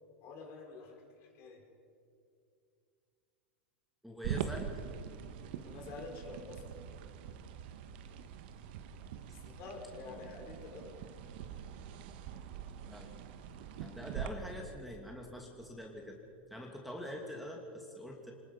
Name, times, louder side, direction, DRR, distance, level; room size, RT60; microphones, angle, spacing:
voice 1, 0.2-1.6 5.5-6.6 9.3-10.9, left 4 dB, 50° left, 2 dB, 4.7 m, -48 dB
voice 2, 4.0-4.7 10.1-10.2 12.9-13.1 13.8-16.2 16.5-18.3, equal, ahead, 0 dB, 2.6 m, -44 dB
sound 1, 4.2-14.3, right 9 dB, 65° right, 1.5 m, -43 dB
26.0 x 20.0 x 5.5 m, 2.5 s
hypercardioid pair, 110°, 6 cm